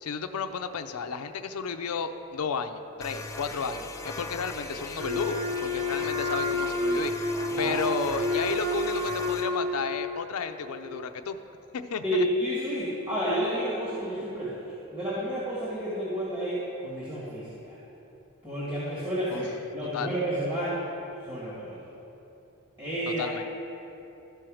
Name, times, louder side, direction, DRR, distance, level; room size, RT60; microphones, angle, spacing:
voice 1, 0.0-7.1 7.6-11.4 11.7-12.3 19.3-19.5 19.9-20.1 23.1-23.4, left 5 dB, 85° left, 8 dB, 0.5 m, -33 dB
sound 1, 3.0-9.5, left 2 dB, 15° left, 0.3 m, -39 dB
Wind instrument woodwind instrument, 5.0-9.9, left 1 dB, 45° right, 2.3 m, -29 dB
voice 2, 12.0-17.8 18.4-20.8 21.3-21.7 22.8-23.3, equal, 20° right, -9 dB, 1.9 m, -30 dB
13.0 x 4.5 x 6.3 m, 3.0 s
head